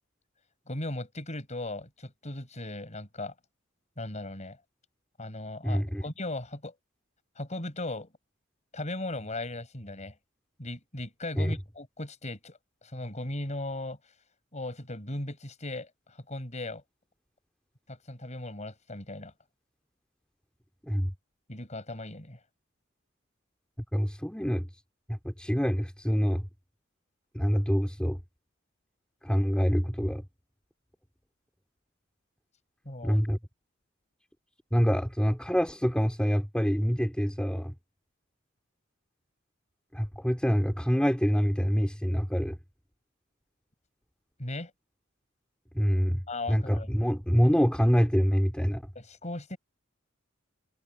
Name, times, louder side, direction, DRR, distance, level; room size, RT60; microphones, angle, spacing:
voice 1, 0.7-3.3 4.0-4.6 5.2-6.7 7.4-8.1 8.7-10.1 10.6-14.0 14.5-16.8 17.9-19.3 21.5-22.4 32.9-33.2 44.4-44.7 46.3-46.9 49.0-49.6, left 2 dB, 35° left, 5.4 m, -37 dB
voice 2, 5.6-6.0 11.4-11.5 20.8-21.1 23.9-24.7 25.1-26.5 27.3-28.2 29.2-30.2 33.0-33.4 34.7-37.7 39.9-42.6 45.7-46.2 46.5-48.8, equal, 5° left, 2.9 m, -26 dB
head